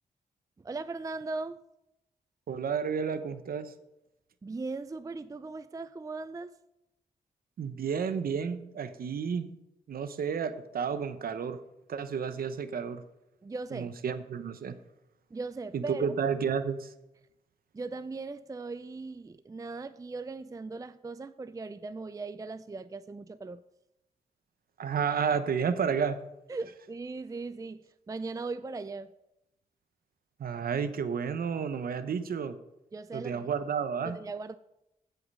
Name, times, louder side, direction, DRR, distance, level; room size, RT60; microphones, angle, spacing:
voice 1, 0.6-1.6 4.4-6.6 13.4-14.0 15.3-16.1 17.7-23.6 26.5-29.1 32.9-33.5 34.0-34.6, right 3 dB, 20° right, 0.4 m, -38 dB
voice 2, 2.5-3.7 7.6-9.5 9.9-11.6 11.9-13.0 13.7-14.7 15.7-16.9 24.8-26.2 30.4-32.6 33.1-34.2, right 6 dB, 70° right, 0.9 m, -31 dB
15.5 x 5.8 x 5.5 m
cardioid pair, 55°, 16 cm